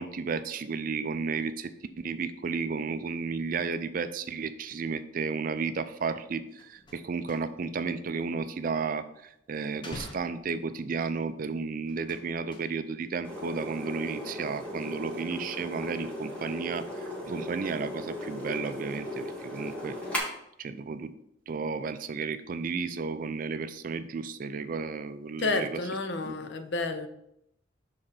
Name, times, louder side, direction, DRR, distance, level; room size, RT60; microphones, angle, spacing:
voice 1, 0.0-1.7 2.0-20.3 20.6-21.1 21.5-25.8 26.2-26.4, right 5 dB, 45° right, 11 dB, 0.4 m, -33 dB
sound 1, 6.1-6.2 6.4-7.8 8.1-9.2 9.7-11.1 11.9-13.1 13.3-13.8 14.1-14.3, left 1 dB, 25° left, 0.9 m, -47 dB
sound 2, 13.2-20.2, left 1 dB, 5° left, 1.2 m, -37 dB
voice 2, 25.4-27.1, left 3 dB, 65° left, 8 dB, 0.6 m, -30 dB
6.5 x 3.7 x 4.3 m, 0.78 s
head